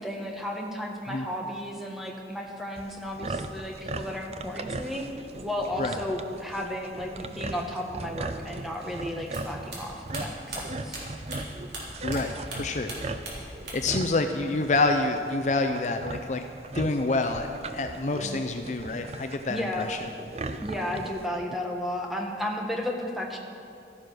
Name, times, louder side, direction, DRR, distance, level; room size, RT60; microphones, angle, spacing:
voice 1, 0.0-5.1 5.4-11.0 19.5-19.9 20.6-23.4, left 1 dB, ahead, 0 dB, 1.3 m, -33 dB
sound 1, 2.8-21.3, right 2 dB, 35° right, 0.5 m, -38 dB
sound 2, 9.3-12.2 12.5-14.0 14.2-15.0, right 2 dB, 65° right, 3.7 m, -39 dB
voice 2, 12.0-12.9 13.3-16.4 16.7-20.1, left 2 dB, 40° left, 5 dB, 0.5 m, -28 dB
13.0 x 9.8 x 6.2 m, 2.5 s
head